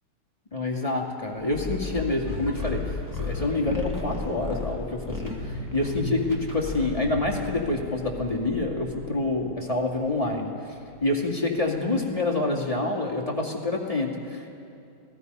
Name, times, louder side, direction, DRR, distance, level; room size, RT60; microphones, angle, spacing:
voice 1, 0.5-2.8 3.2-10.5 11.0-14.5, left 2 dB, 15° left, -1 dB, 2.2 m, -27 dB
sound 1, 1.3-12.4, equal, 65° right, 5.0 m, -41 dB
sound 2, 1.5-7.2, left 3 dB, 10° right, 2.6 m, -34 dB
28.5 x 18.5 x 5.5 m, 2.6 s
omnidirectional pair, 2.2 m